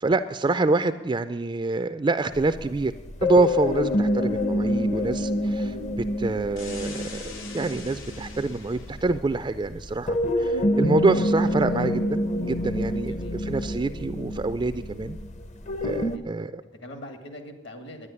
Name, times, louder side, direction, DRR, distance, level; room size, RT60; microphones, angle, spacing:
voice 1, 0.0-2.9 3.2-5.8 6.2-15.2 15.8-16.6, right 3 dB, 25° right, 11 dB, 0.3 m, -26 dB
sound 1, 2.3-16.2, left 1 dB, 40° left, 0.7 m, -27 dB
sound 2, 6.6-9.0, left 4 dB, 90° left, 2.5 m, -42 dB
voice 2, 13.0-13.9 16.1-16.3 16.8-18.1, left 1 dB, 65° left, 6 dB, 2.0 m, -43 dB
11.0 x 10.0 x 9.8 m, 1.3 s
head